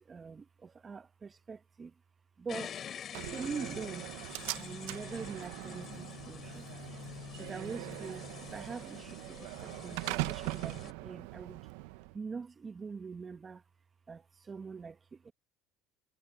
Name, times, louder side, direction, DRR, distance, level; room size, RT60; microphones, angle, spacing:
voice 1, 0.1-1.9 2.4-2.8 3.3-4.1 4.6-6.7 7.4-8.2 8.5-10.0 10.2-11.6 12.1-13.6 14.1-15.3, right 5 dB, 30° right, 1.4 m, -43 dB
sound 1, 2.5-10.9, left 9 dB, 45° left, 4.3 m, -47 dB
Slam, 3.1-12.1, right 22 dB, 80° right, 1.0 m, -41 dB
supercardioid pair, 90°, 0 cm